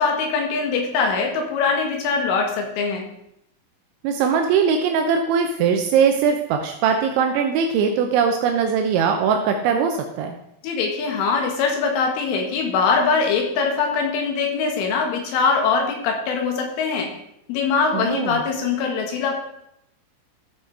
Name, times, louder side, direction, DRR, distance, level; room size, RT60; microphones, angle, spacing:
voice 1, 0.0-3.1 10.6-17.1 17.5-19.4, left 5 dB, 80° left, 2 dB, 4.2 m, -22 dB
voice 2, 4.0-10.4 17.9-18.4, right 6 dB, 80° right, 4 dB, 3.1 m, -20 dB
13.5 x 6.7 x 4.7 m, 0.79 s
omnidirectional pair, 5.6 m